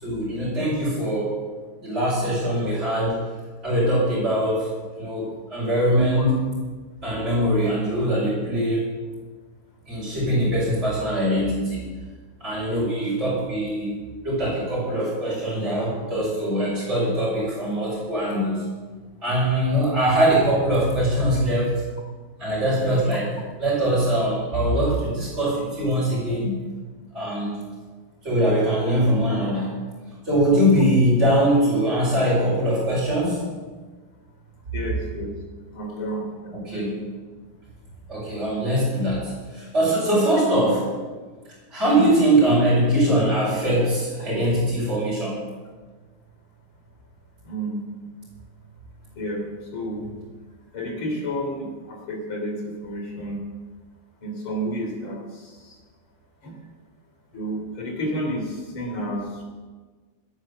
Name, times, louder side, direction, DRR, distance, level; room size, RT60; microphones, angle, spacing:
voice 1, 0.0-1.3 1.8-3.2 3.6-4.7 5.0-6.4 7.0-8.8 9.9-11.8 12.4-13.9 14.2-18.6 19.2-21.8 22.4-23.3 23.6-26.6 27.1-27.6 28.2-29.7 30.2-33.4 36.5-37.0 38.1-40.8 41.7-45.4, right 1 dB, 30° right, -9 dB, 5.4 m, -22 dB
voice 2, 34.7-35.3 35.7-37.0 47.5-47.8 49.2-49.4 49.7-50.0 50.7-53.4 54.2-55.5 56.4-56.5 57.3-59.2, equal, 80° left, 1 dB, 4.2 m, -30 dB
17.5 x 9.7 x 6.9 m, 1.4 s
omnidirectional pair, 2.3 m